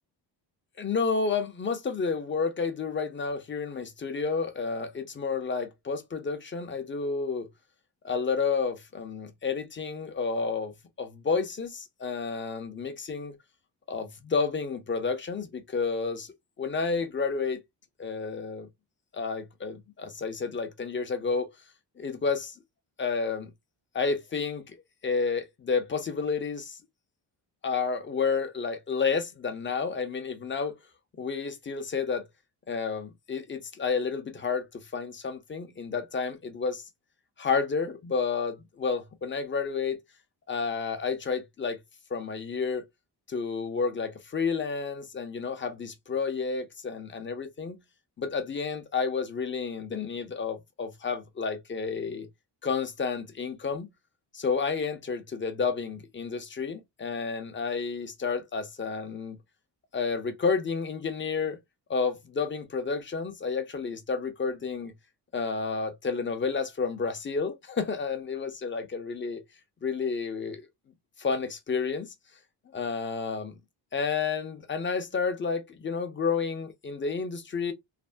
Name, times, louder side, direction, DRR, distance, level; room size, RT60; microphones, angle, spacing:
voice 1, 0.8-7.5 8.0-13.4 13.9-17.6 18.0-18.7 19.1-21.5 22.0-22.6 23.0-23.5 23.9-24.8 25.0-26.8 27.6-30.7 31.2-32.3 32.7-36.9 37.4-40.0 40.5-41.8 42.1-42.9 43.3-47.8 48.2-52.3 52.6-53.9 54.3-59.4 59.9-61.6 61.9-64.9 65.3-69.4 69.8-70.7 71.2-72.1 72.7-73.6 73.9-77.7, left 5 dB, 25° left, 0.6 m, -30 dB
3.3 x 2.0 x 2.4 m
cardioid pair, 110°, 43 cm